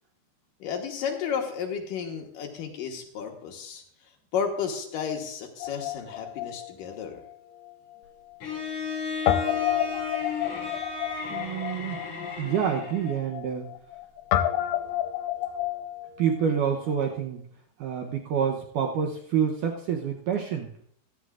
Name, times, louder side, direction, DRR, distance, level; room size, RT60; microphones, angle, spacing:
voice 1, 0.6-3.8 4.3-7.2, left 7 dB, 70° left, 2 dB, 2.6 m, -32 dB
Guitar, 5.6-8.0 8.3-8.4 9.3-17.1, left 11 dB, 85° left, 2.8 m, -31 dB
Bowed string instrument, 8.4-13.3, left 5 dB, 45° left, 3.4 m, -34 dB
voice 2, 11.3-12.0 12.4-13.7 16.2-17.4 17.8-20.7, right 7 dB, 75° right, 2 dB, 2.0 m, -27 dB
16.0 x 12.5 x 2.5 m, 0.63 s
omnidirectional pair, 4.6 m